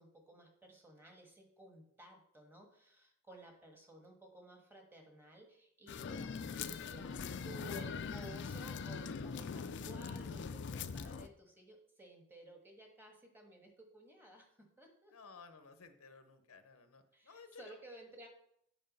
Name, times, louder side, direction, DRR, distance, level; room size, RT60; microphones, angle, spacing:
voice 1, 0.0-15.4 17.1-18.3, equal, 10° right, 2 dB, 1.3 m, -56 dB
sound 1, 5.9-11.3, left 5 dB, 55° left, 0.4 m, -42 dB
voice 2, 15.1-17.8, left 4 dB, 85° left, 9 dB, 0.8 m, -57 dB
7.8 x 4.7 x 5.3 m, 0.72 s
head